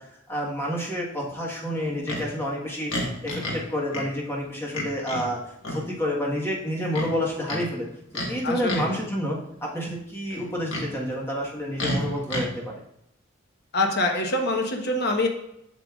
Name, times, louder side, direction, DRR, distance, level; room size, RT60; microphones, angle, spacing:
voice 1, 0.3-5.4 5.7-7.8 8.3-12.8, equal, 10° left, -3 dB, 1.4 m, -29 dB
Livestock farm animals working animals, 2.1-2.3 2.9-3.6 3.9-4.1 4.7-5.3 5.6-5.8 6.9-7.6 8.1-8.3 8.6-9.0 10.3-10.9 11.8-12.5, left 1 dB, 75° left, 1.6 m, -30 dB
voice 2, 8.4-8.9 13.7-15.3, left 2 dB, 55° left, 3 dB, 1.1 m, -25 dB
7.7 x 6.7 x 2.4 m, 0.78 s
head